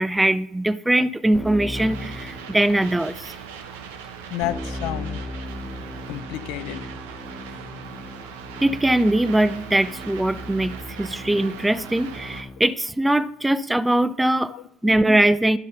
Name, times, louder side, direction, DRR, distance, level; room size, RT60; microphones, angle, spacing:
voice 1, 0.0-3.3 8.6-14.5 14.8-15.6, right 1 dB, 10° right, 0.4 m, -21 dB
Keyboard (musical), 1.3-3.0 4.4-12.8, left 1 dB, 20° left, 1.1 m, -37 dB
sound 1, 1.7-12.4, right 7 dB, 80° right, 0.9 m, -40 dB
voice 2, 4.3-5.2 6.1-6.9 14.5-15.0, left 15 dB, 65° left, 0.4 m, -31 dB
11.5 x 4.1 x 5.3 m
hypercardioid pair, 75°, 0 cm